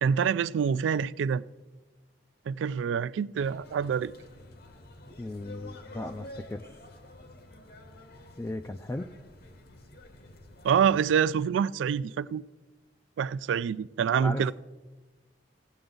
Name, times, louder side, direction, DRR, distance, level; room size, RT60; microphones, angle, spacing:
voice 1, 0.0-1.4 2.5-4.1 10.6-12.4 13.2-14.5, right 7 dB, 80° right, 0.3 m, -26 dB
sound 1, 3.4-11.1, left 1 dB, 55° left, 0.9 m, -49 dB
voice 2, 5.2-6.8 8.4-9.1 14.1-14.5, left 1 dB, 15° left, 0.3 m, -36 dB
16.5 x 7.9 x 3.8 m
head